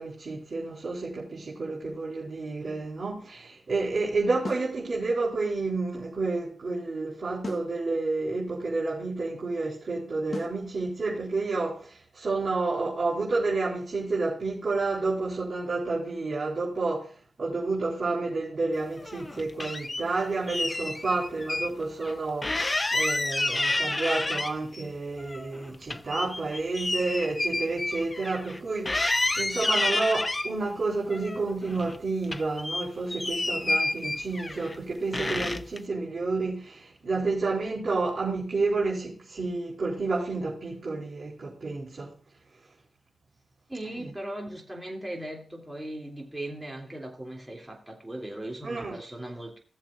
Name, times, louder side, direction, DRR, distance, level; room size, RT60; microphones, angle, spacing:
voice 1, 0.0-17.1 17.4-42.1 43.9-44.0 48.6-49.0, right 3 dB, 50° right, 3.9 m, -30 dB
sound 1, 4.4-4.7 7.4-7.7 10.3-10.6, left 3 dB, 40° left, 1.5 m, -36 dB
sound 2, 19.0-20.0 20.5-21.7 22.0-22.1 22.4-24.8 25.2-28.6 28.9-30.5 31.1-32.0 32.2-34.8 35.1-35.8, left 2 dB, 25° left, 0.4 m, -29 dB
voice 2, 43.7-49.6, right 1 dB, 15° right, 3.1 m, -38 dB
17.5 x 7.3 x 2.6 m
cardioid pair, 70°, 0 cm